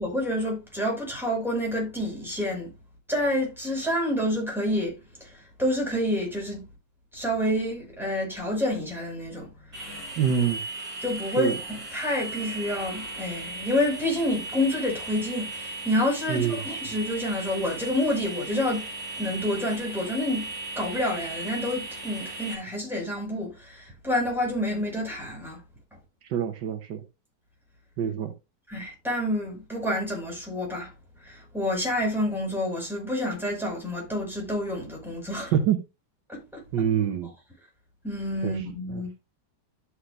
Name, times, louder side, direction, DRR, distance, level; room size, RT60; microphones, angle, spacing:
voice 1, 0.0-2.7 3.1-6.7 7.1-9.5 9.8-9.9 11.0-18.8 19.2-20.5 20.8-25.6 28.7-30.9 31.2-35.5 36.3-36.6 38.0-39.3, left 1 dB, ahead, 5.4 m, -28 dB
sound 1, 9.7-22.5, right 2 dB, 30° right, 4.6 m, -37 dB
voice 2, 10.2-10.6 11.3-11.6 16.3-16.6 26.3-27.0 28.0-28.3 35.5-35.8 36.7-37.3 38.4-38.6 38.9-39.0, right 8 dB, 80° right, 1.7 m, -25 dB
12.5 x 6.6 x 2.6 m
omnidirectional pair, 1.9 m